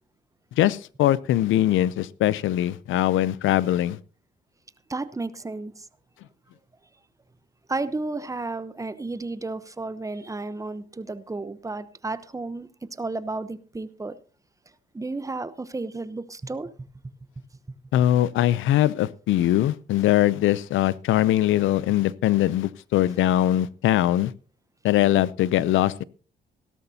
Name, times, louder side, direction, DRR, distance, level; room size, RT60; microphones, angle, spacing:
voice 1, 0.6-4.0 17.9-24.3 24.8-26.0, left 13 dB, 80° left, 20 dB, 0.6 m, -21 dB
voice 2, 4.9-5.9 7.7-14.2 14.9-16.7, right 3 dB, 15° right, 14 dB, 0.8 m, -32 dB
17.0 x 12.5 x 2.8 m, 0.39 s
cardioid pair, 90°, 20 cm